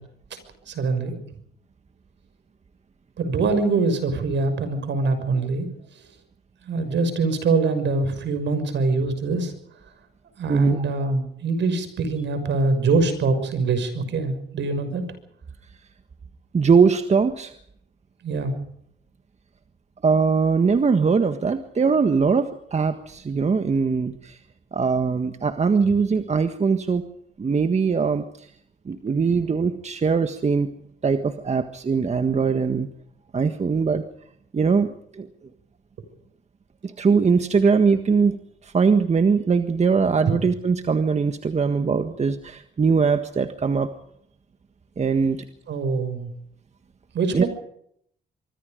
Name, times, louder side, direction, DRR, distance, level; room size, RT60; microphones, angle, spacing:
voice 1, 0.7-1.2 3.2-5.7 6.6-9.5 10.4-15.0 18.2-18.5 45.7-46.3 47.1-47.5, right 3 dB, 65° right, 9 dB, 6.3 m, -24 dB
voice 2, 10.5-10.8 16.5-17.6 20.0-24.4 24.7-27.0 27.4-28.5 28.8-30.7 31.0-32.9 33.3-34.0 34.5-34.9 35.1-35.3 36.8-38.4 38.6-43.9 45.0-45.4 47.3-47.4, right 5 dB, 35° right, 8 dB, 1.6 m, -21 dB
25.5 x 23.5 x 5.2 m, 0.68 s
cardioid pair, 90°, 20 cm